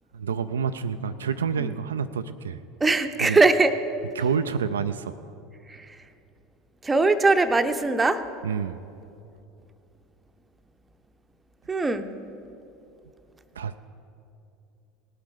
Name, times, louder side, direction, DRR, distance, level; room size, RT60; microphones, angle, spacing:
voice 1, 0.1-2.6 3.2-3.4 4.2-5.2 8.4-8.8 13.6-13.8, right 6 dB, 75° right, 10 dB, 0.3 m, -28 dB
voice 2, 2.8-3.8 5.7-6.0 6.8-8.2 11.7-12.1, right 3 dB, 15° right, 9 dB, 0.7 m, -21 dB
18.5 x 8.5 x 5.0 m, 2.7 s
figure-of-eight pair, 75°, 0 cm